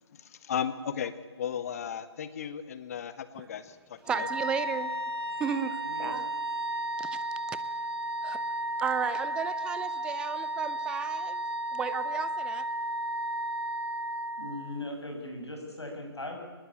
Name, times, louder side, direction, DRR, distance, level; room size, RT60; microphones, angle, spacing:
voice 1, 0.2-4.3, left 8 dB, 35° left, 12 dB, 1.6 m, -35 dB
Wind instrument woodwind instrument, 4.0-14.8, right 1 dB, 65° right, 2.3 m, -33 dB
voice 2, 4.1-4.9 5.4-6.3 7.0-7.2 7.5-7.6 8.2-8.4 8.8-11.4 11.7-12.6, right 7 dB, 5° right, 14 dB, 0.6 m, -34 dB
voice 3, 5.8-6.2 14.4-16.4, left 2 dB, 75° left, 2 dB, 7.4 m, -39 dB
23.0 x 20.0 x 8.7 m, 1.4 s
figure-of-eight pair, 140°, 14 cm